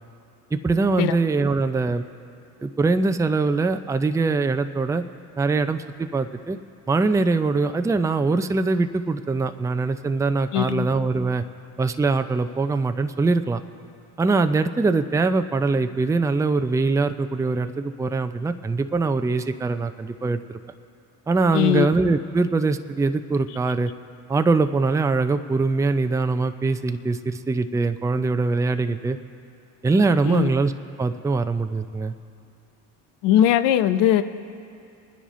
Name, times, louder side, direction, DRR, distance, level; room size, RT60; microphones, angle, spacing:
voice 1, 0.5-2.0 2.6-5.0 5.4-6.6 6.9-11.4 11.8-13.6 14.2-20.6 21.3-23.9 24.3-29.2 29.8-30.7 31.0-32.1, right 3 dB, 10° right, 9 dB, 0.4 m, -22 dB
voice 2, 10.5-10.9 21.5-21.9 30.2-30.5 33.2-34.2, left 11 dB, 80° left, 11 dB, 0.7 m, -19 dB
24.5 x 10.0 x 3.1 m, 2.6 s
supercardioid pair, 80°, 42 cm